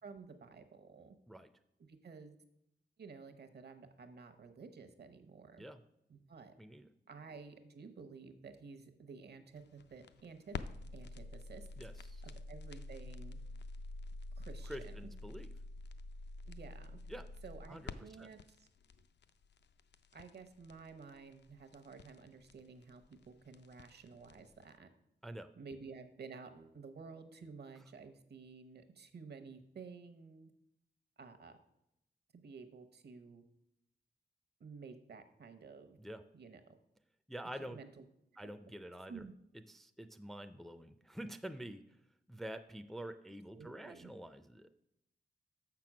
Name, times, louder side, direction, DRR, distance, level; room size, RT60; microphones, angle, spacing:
voice 1, 0.0-1.2 1.9-2.4 3.0-5.6 6.1-6.5 7.1-10.6 10.9-11.7 12.2-13.4 14.4-15.1 16.5-17.0 17.4-18.7 20.1-24.9 25.6-30.5 31.2-31.6 32.3-33.4 34.6-36.0 36.3-36.8 37.6-38.0 38.4-38.5 39.1-39.3 43.5-44.1, right 5 dB, 70° right, 8 dB, 0.9 m, -52 dB
voice 2, 6.6-6.9 11.8-12.2 14.7-15.5 17.1-17.2 17.7-17.8 18.2-18.3 25.2-25.5 36.0-36.2 37.3-37.8 38.4-39.2 39.7-41.8 42.3-44.7, right 1 dB, ahead, 9 dB, 0.4 m, -47 dB
sound 1, 9.6-24.7, left 3 dB, 75° left, 0.5 m, -48 dB
7.0 x 6.0 x 6.0 m, 0.83 s
wide cardioid pair, 165°, 18 cm